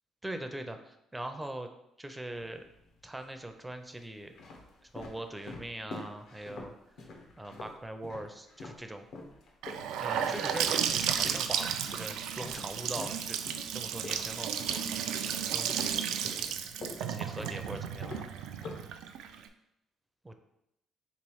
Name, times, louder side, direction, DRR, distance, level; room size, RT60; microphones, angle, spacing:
voice 1, 0.2-1.7 2.0-2.6 3.0-4.4 4.8-6.7 7.4-9.1 10.0-13.4 13.7-14.6 15.5-16.5 17.0-18.2 20.2-20.4, right 1 dB, 10° right, 6 dB, 0.4 m, -41 dB
sound 1, 2.3-3.0 3.7-8.8 9.1-15.4 15.7-19.4, left 3 dB, 70° left, 0.7 m, -46 dB
Gurgling / Sink (filling or washing) / Bathtub (filling or washing), 9.6-19.5, right 8 dB, 85° right, 0.3 m, -33 dB
3.3 x 3.1 x 4.6 m, 0.83 s
cardioid pair, 95°, 0 cm